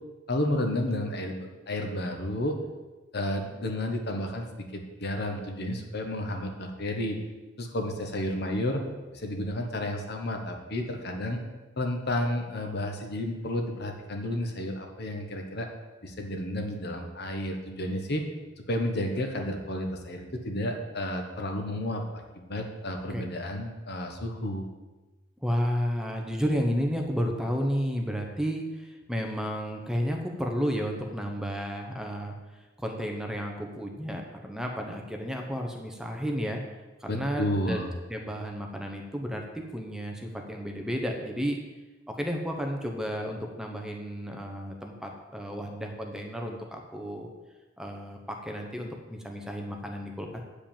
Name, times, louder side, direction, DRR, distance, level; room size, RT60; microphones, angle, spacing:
voice 1, 0.3-2.6 3.1-7.2 7.6-8.8 9.1-11.4 11.8-15.7 16.0-18.2 18.7-22.0 22.3-24.7 37.1-37.9, left 1 dB, 55° left, 3 dB, 1.3 m, -31 dB
voice 2, 25.4-36.6 37.0-37.8 38.1-41.6 42.1-47.3 47.8-50.4, equal, 5° right, 2 dB, 0.9 m, -32 dB
8.7 x 5.1 x 7.3 m, 1.2 s
head